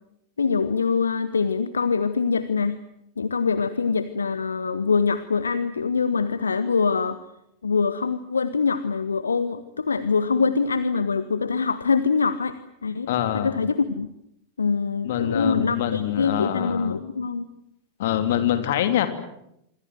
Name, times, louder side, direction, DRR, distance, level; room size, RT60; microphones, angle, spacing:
voice 1, 0.4-2.8 3.2-7.2 7.6-12.6 12.8-13.1 13.3-14.1 14.6-17.5, left 5 dB, 75° left, 13 dB, 1.1 m, -24 dB
voice 2, 13.1-13.6 15.0-17.0 18.0-19.1, left 11 dB, 55° left, 8 dB, 3.1 m, -24 dB
26.0 x 25.5 x 7.7 m, 0.81 s
figure-of-eight pair, 90°, 0 cm